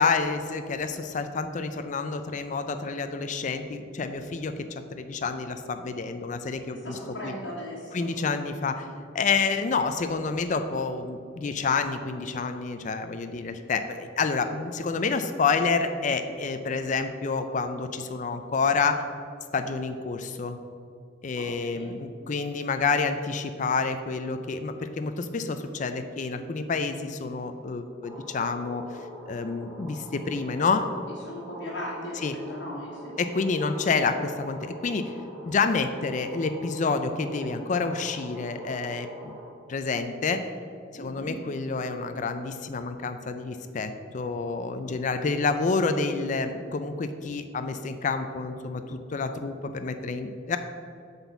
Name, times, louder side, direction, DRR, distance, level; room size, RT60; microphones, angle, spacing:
voice 1, 0.0-4.5 5.0-6.9 7.2-7.3 7.9-8.9 9.1-19.0 19.5-20.6 21.2-28.8 29.3-30.9 32.2-32.3 33.2-35.1 35.4-39.3 39.7-40.4 40.9-50.6, left 4 dB, 40° left, 8 dB, 0.4 m, -28 dB
voice 2, 6.8-8.1 21.3-21.9 31.2-33.2 40.9-41.4, left 1 dB, 65° left, -8 dB, 1.7 m, -38 dB
sound 1, 28.0-39.5, equal, ahead, 1.2 m, -44 dB
8.0 x 4.1 x 6.9 m, 2.4 s
head